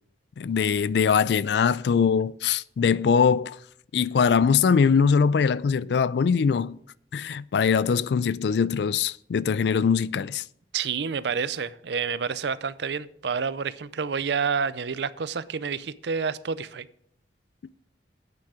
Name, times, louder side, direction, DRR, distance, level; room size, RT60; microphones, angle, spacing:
voice 1, 0.4-3.6 3.9-6.8 7.1-10.4, left 6 dB, 65° left, 0.3 m, -22 dB
voice 2, 10.7-16.9, right 6 dB, 70° right, 0.5 m, -29 dB
9.6 x 9.1 x 4.9 m
head